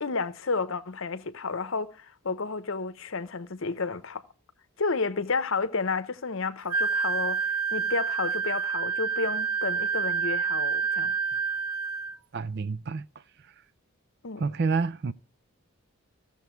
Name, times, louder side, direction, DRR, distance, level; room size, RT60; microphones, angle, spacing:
voice 1, 0.0-4.2 4.8-11.2 14.2-14.4, left 4 dB, 60° left, 0.8 m, -31 dB
Wind instrument woodwind instrument, 6.7-12.2, right 6 dB, 85° right, 0.7 m, -28 dB
voice 2, 12.3-13.0 14.4-15.1, right 4 dB, 50° right, 0.4 m, -28 dB
15.0 x 7.0 x 4.5 m
head